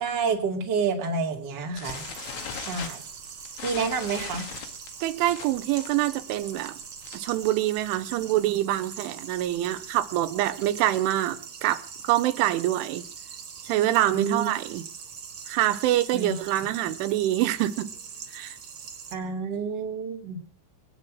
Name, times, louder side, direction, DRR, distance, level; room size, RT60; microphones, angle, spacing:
voice 1, 0.0-2.0 2.6-3.0 3.6-4.5 14.1-14.5 16.1-16.4 19.1-20.4, right 5 dB, 30° right, 1 dB, 2.3 m, -28 dB
sound 1, 1.8-7.4 7.7-7.9 8.2-8.3 8.6-8.9 9.4-10.9, left 8 dB, 85° left, 4.5 m, -40 dB
sound 2, 1.8-19.1, right 6 dB, 75° right, 1.2 m, -42 dB
voice 2, 5.0-6.8 7.1-13.0 13.6-14.8 15.5-17.9 18.3-18.6, right 14 dB, 90° right, 10 dB, 3.4 m, -25 dB
21.0 x 10.0 x 6.2 m, 0.43 s
omnidirectional pair, 5.5 m